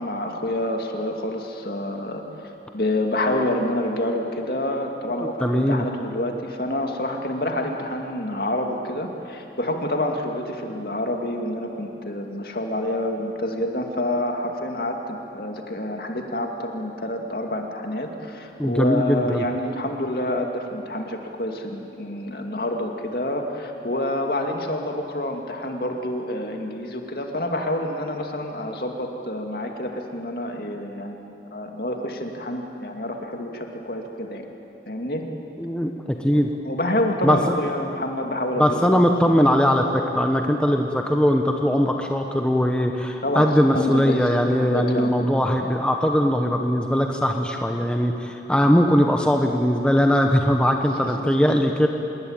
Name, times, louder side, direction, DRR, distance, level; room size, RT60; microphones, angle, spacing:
voice 1, 0.0-2.2 2.7-34.4 34.9-35.2 36.6-38.8 39.2-39.3 43.2-43.5 43.7-44.3 44.6-45.3, left 1 dB, 55° left, 3 dB, 2.6 m, -27 dB
voice 2, 5.4-5.8 18.6-19.4 35.6-36.5 37.2-37.6 38.6-51.9, equal, 5° left, 2 dB, 1.2 m, -20 dB
27.0 x 21.0 x 9.1 m, 2.9 s
head